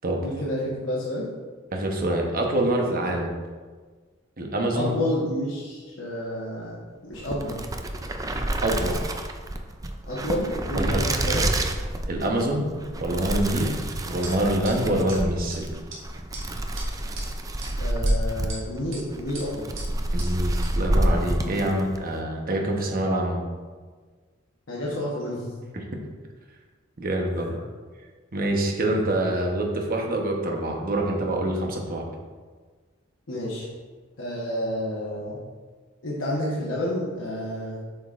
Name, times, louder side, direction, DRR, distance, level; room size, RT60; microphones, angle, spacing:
voice 1, 0.2-1.3 4.7-7.6 10.0-11.4 17.8-19.7 24.7-25.5 27.4-27.6 33.3-33.7 34.2-35.4 36.0-37.8, left 1 dB, 85° left, -5 dB, 1.1 m, -30 dB
voice 2, 1.7-3.3 4.4-4.9 8.6-9.1 10.8-11.0 12.1-12.7 13.0-13.7 14.0-15.8 20.1-23.4 25.7-25.8 27.0-27.6 28.3-32.0, right 1 dB, 50° right, 1 dB, 0.9 m, -25 dB
sound 1, 7.1-22.1, right 1 dB, 20° right, 0.4 m, -28 dB
sound 2, 14.2-14.3 14.6-14.7 15.1-15.2 15.5-15.6 15.9-16.0 16.3-16.4 16.8-17.2 17.6-17.7 18.1-18.6 18.9-19.0 19.3-19.4 19.8-19.9 20.2-20.3 20.6-20.7, right 3 dB, 85° right, 1.7 m, -38 dB
7.8 x 5.3 x 2.5 m, 1.5 s
head